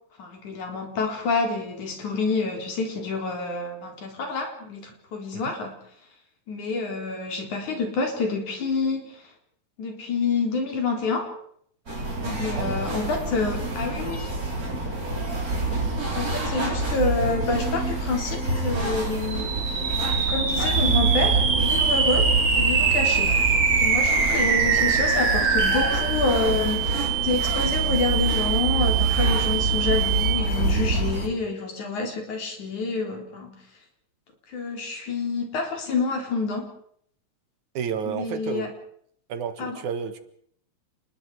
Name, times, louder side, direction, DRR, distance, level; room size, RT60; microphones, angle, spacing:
voice 1, 0.2-5.8 6.5-9.2 9.8-11.3 12.2-14.4 16.1-19.5 20.2-23.4 23.8-33.6 34.5-36.7 38.1-38.7 39.6-39.8, left 3 dB, 80° left, 3 dB, 5.3 m, -28 dB
sound 1, 11.9-31.3, right 2 dB, 30° right, 4.5 m, -26 dB
sound 2, 19.2-30.8, right 6 dB, 55° right, 3.3 m, -24 dB
voice 2, 37.7-38.7 39.3-40.2, right 7 dB, 85° right, 10 dB, 3.1 m, -31 dB
29.5 x 20.5 x 4.9 m, 0.65 s
omnidirectional pair, 3.4 m